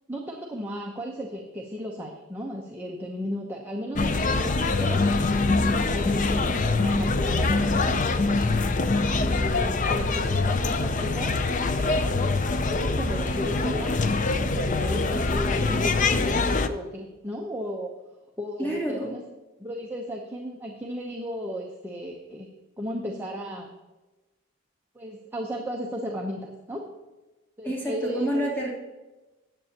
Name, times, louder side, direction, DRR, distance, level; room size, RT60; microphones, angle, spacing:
voice 1, 0.1-5.0 5.5-7.8 9.1-11.4 11.7-12.2 12.6-14.0 14.4-17.9 18.4-19.2 19.6-22.5 22.8-23.7 24.9-26.9 27.6-28.5, equal, 10° right, -2 dB, 0.8 m, -35 dB
sound 1, 3.9-16.7, left 3 dB, 35° left, 0.5 m, -24 dB
voice 2, 18.6-19.1 27.6-28.7, right 1 dB, 10° left, -5 dB, 2.9 m, -28 dB
14.0 x 9.0 x 2.9 m, 1.1 s
head